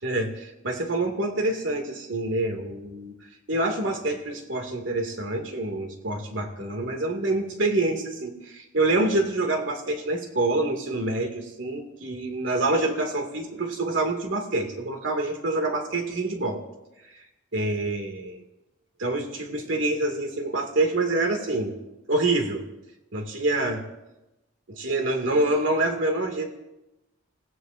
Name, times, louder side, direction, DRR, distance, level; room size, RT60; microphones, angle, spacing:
voice 1, 0.0-3.2 3.5-16.6 17.1-17.2 17.5-18.4 19.0-21.8 22.1-22.6 23.1-23.8 24.7-26.5, right 2 dB, 75° right, 3 dB, 2.3 m, -26 dB
30.0 x 16.5 x 2.6 m, 0.98 s
head